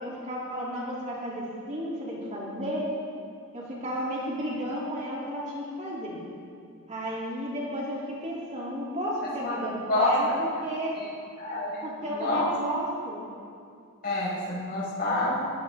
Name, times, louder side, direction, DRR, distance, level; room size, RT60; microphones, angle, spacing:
voice 1, 0.0-2.9 3.5-6.2 6.9-10.9 11.8-13.2, equal, 35° right, -6 dB, 3.1 m, -33 dB
voice 2, 11.4-12.4 14.0-15.5, left 2 dB, 45° left, -8 dB, 5.2 m, -28 dB
22.0 x 16.0 x 3.7 m, 2.4 s
head